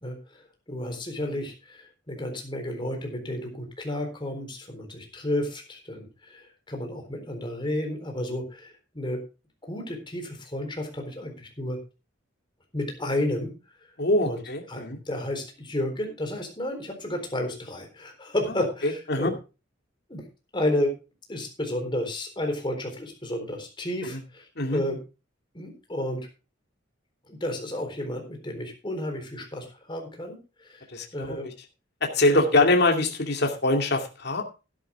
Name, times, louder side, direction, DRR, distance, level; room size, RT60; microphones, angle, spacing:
voice 1, 0.0-9.2 9.6-11.8 12.7-13.5 14.2-14.4 14.7-19.3 20.1-20.3 20.5-20.9 21.3-24.4 24.7-25.0 25.5-26.3 27.3-30.9 31.1-31.5 32.2-32.7, left 1 dB, 25° left, 3 dB, 4.0 m, -32 dB
voice 2, 14.0-15.0 18.5-18.6 19.1-19.3 24.0-24.2 24.6-24.8 30.9-31.4 32.0-34.4, left 2 dB, 55° left, 2 dB, 2.5 m, -24 dB
13.5 x 10.5 x 3.6 m, 0.31 s
head